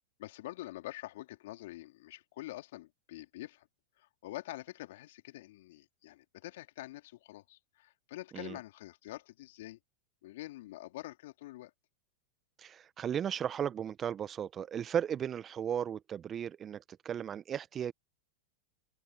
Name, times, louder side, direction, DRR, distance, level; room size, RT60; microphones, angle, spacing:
voice 1, 0.2-3.7 4.0-9.8 10.2-11.7, left 16 dB, 65° left, 2.6 m, -46 dB
voice 2, 12.6-17.9, right 9 dB, 30° right, 1.1 m, -35 dB
open air
hypercardioid pair, 95°, 0 cm